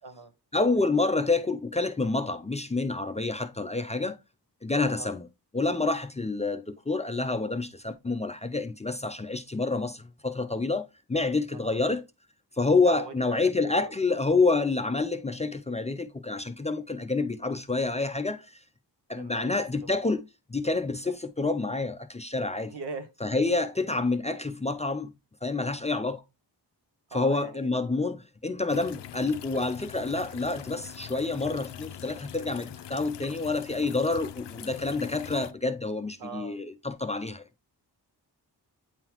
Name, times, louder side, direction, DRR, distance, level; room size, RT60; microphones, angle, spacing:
voice 1, 0.5-4.2 4.6-5.3 5.5-12.0 12.6-18.6 19.1-20.2 20.5-22.7 23.2-25.1 25.4-26.2 27.1-37.4, left 3 dB, 20° left, 0.3 m, -28 dB
voice 2, 12.8-13.9 19.1-19.9 22.7-23.1 27.1-27.7 35.2-35.5 36.2-36.6, right 4 dB, 85° right, 1.2 m, -41 dB
sound 1, 28.7-35.5, left 10 dB, 85° left, 0.5 m, -43 dB
8.8 x 3.8 x 2.9 m
wide cardioid pair, 150°, 41 cm